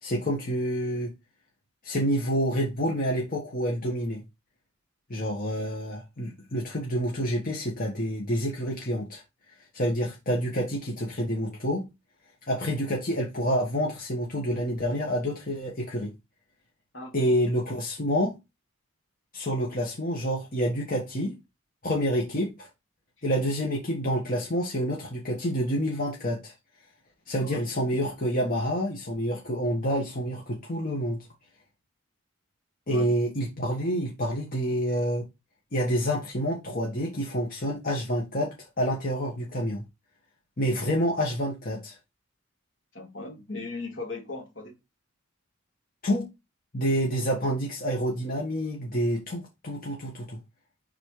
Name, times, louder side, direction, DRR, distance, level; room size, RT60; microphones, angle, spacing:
voice 1, 0.0-1.1 1.8-4.2 5.1-9.2 9.7-11.8 12.5-16.1 17.1-18.4 19.3-21.3 21.8-22.7 23.2-26.5 27.3-31.2 32.9-35.2 35.7-39.8 40.6-42.0 46.0-46.3 46.7-50.4, equal, 40° left, 1.3 m, -28 dB
voice 2, 16.9-17.3 27.4-27.7 32.9-33.1 42.9-44.8, left 3 dB, 60° left, 2.0 m, -38 dB
5.4 x 3.9 x 4.7 m
head